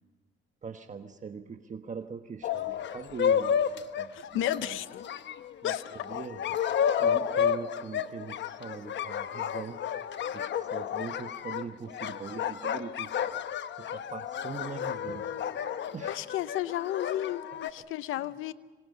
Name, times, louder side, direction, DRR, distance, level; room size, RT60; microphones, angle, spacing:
voice 1, 0.6-4.8 5.6-5.7 6.0-6.4 7.0-9.8 10.3-13.3 13.8-15.3 15.9-16.2 17.8-17.9, right 5 dB, 40° right, 6 dB, 1.4 m, -42 dB
sound 1, 2.4-17.7, left 8 dB, 65° left, 1.0 m, -31 dB
voice 2, 4.1-5.1 5.6-5.8 7.4-7.5 16.1-18.5, left 13 dB, 90° left, 14 dB, 0.8 m, -33 dB
26.5 x 24.0 x 5.5 m, 1.3 s
cardioid pair, 90°, 20 cm